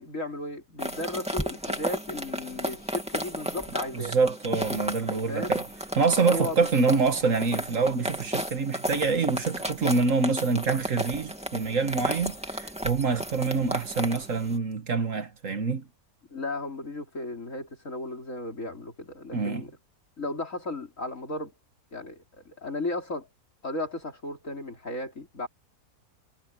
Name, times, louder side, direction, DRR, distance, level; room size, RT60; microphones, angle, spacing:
voice 1, 0.0-4.2 5.3-5.6 6.2-6.7 16.3-19.7 20.2-21.5 21.9-23.3 23.6-25.5, left 2 dB, 55° left, 4.5 m, -35 dB
sound 1, 0.8-14.6, equal, 5° right, 2.5 m, -34 dB
voice 2, 3.9-5.7 6.0-15.8 19.3-19.6, right 4 dB, 55° right, 1.8 m, -26 dB
omnidirectional pair, 1.6 m